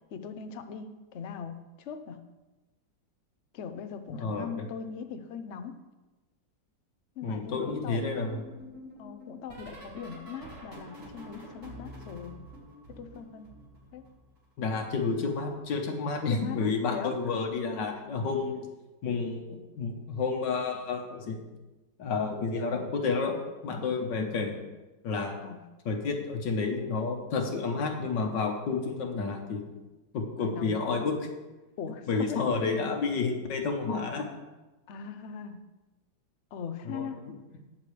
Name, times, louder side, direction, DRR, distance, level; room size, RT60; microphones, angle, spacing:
voice 1, 0.1-2.2 3.5-5.8 7.2-8.0 9.0-12.4 13.0-13.5 13.9-14.0 16.3-17.2 17.7-17.8 25.4-25.6 30.4-30.7 31.8-32.8 34.9-35.6 36.5-37.2, left 7 dB, 55° left, 9 dB, 0.8 m, -40 dB
voice 2, 4.1-4.7 7.2-8.4 14.6-18.7 19.0-21.4 22.0-24.5 25.0-25.4 25.9-29.6 30.1-31.3 32.1-34.3 36.9-37.3, left 4 dB, 75° left, 4 dB, 1.8 m, -30 dB
sound 1, 7.7-14.5 14.7-16.3 17.3-17.7 17.9-18.3 19.8-20.1 20.4-20.7 22.2-22.3, equal, 40° right, 2.6 m, -49 dB
19.0 x 6.8 x 3.3 m, 1.1 s
omnidirectional pair, 2.0 m